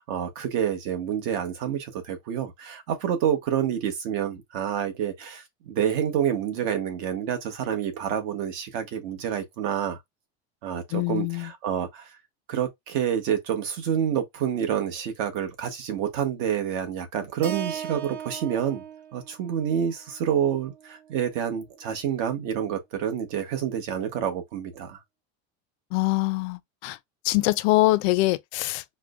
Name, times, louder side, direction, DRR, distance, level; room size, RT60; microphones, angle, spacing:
voice 1, 0.0-10.0 10.6-12.1 12.5-18.8 19.1-25.0, right 9 dB, 60° right, 1.2 m, -28 dB
voice 2, 10.9-11.5 25.9-27.0 27.2-28.8, left 19 dB, 70° left, 0.5 m, -24 dB
Keyboard (musical), 17.4-21.7, right 9 dB, 30° right, 0.5 m, -39 dB
4.7 x 2.2 x 2.4 m
supercardioid pair, 155°, 34 cm